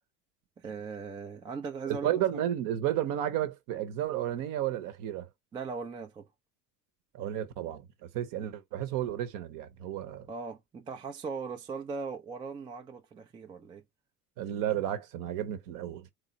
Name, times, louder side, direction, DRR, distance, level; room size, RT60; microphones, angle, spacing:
voice 1, 0.6-2.1 5.5-6.2 8.4-8.5 10.3-13.8, right 5 dB, 10° right, 0.3 m, -39 dB
voice 2, 1.9-5.3 7.1-10.3 14.4-16.1, right 11 dB, 45° right, 0.8 m, -32 dB
3.8 x 3.0 x 3.0 m
figure-of-eight pair, 65°, 48 cm